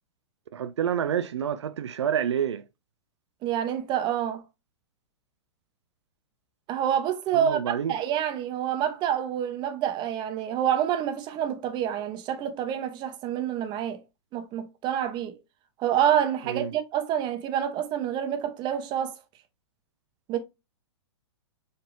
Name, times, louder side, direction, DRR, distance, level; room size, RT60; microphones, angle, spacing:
voice 1, 0.5-2.6 7.3-7.9 16.5-16.7, right 9 dB, 80° right, 0.4 m, -28 dB
voice 2, 3.4-4.4 6.7-14.0 14.3-15.4 15.8-19.1 20.3-20.4, right 9 dB, 30° right, 0.9 m, -27 dB
4.9 x 2.9 x 2.6 m
hypercardioid pair, 115°, 14 cm